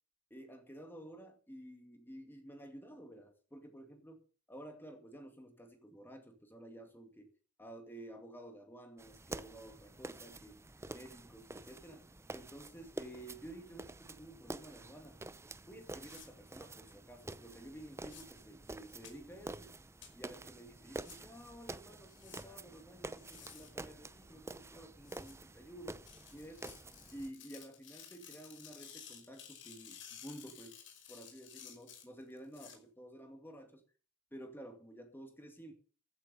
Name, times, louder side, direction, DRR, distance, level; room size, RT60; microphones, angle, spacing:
voice 1, 0.3-7.3 7.6-10.6 10.9-12.1 12.3-15.2 15.6-19.7 20.1-26.0 26.3-26.8 27.1-30.8 31.1-33.8 34.3-35.7, right 1 dB, 10° left, 5 dB, 2.3 m, -52 dB
sound 1, 9.0-27.3, right 2 dB, 15° right, 0.6 m, -49 dB
sound 2, 16.0-16.3 18.0-18.2 19.0-19.1 20.0-20.1 21.0-21.2 22.1-22.4 23.1-23.7 25.0-25.3 26.1-32.8, left 8 dB, 80° left, 5.6 m, -54 dB
15.0 x 8.2 x 6.9 m, 0.40 s
head